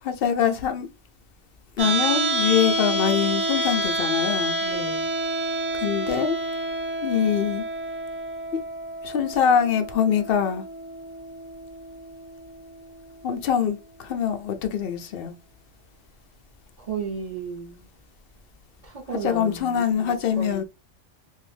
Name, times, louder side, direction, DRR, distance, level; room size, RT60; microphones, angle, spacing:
voice 1, 0.0-0.9 1.8-4.6 5.8-6.4 7.0-7.6 8.5-8.6 9.0-10.6 13.2-15.3 19.1-20.6, left 8 dB, 60° left, 0.7 m, -24 dB
sound 1, 1.8-13.8, right 1 dB, 90° right, 1.1 m, -29 dB
voice 2, 4.6-5.1 16.8-17.9 18.8-20.6, right 5 dB, 35° right, 0.8 m, -34 dB
2.7 x 2.6 x 3.2 m
omnidirectional pair, 1.2 m